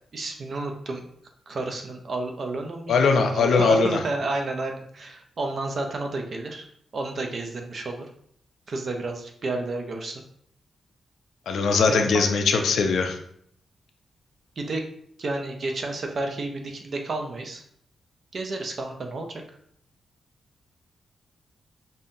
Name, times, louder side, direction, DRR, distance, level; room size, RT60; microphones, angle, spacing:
voice 1, 0.1-1.1 1.5-6.7 6.9-8.1 8.7-10.2 11.9-12.2 14.6-14.8 15.2-17.6 18.3-19.4, right 2 dB, 40° right, 3 dB, 0.5 m, -31 dB
voice 2, 2.9-4.0 11.5-13.2, left 4 dB, 75° left, 5 dB, 0.5 m, -21 dB
5.3 x 2.7 x 2.6 m, 0.66 s
wide cardioid pair, 170°, 0 cm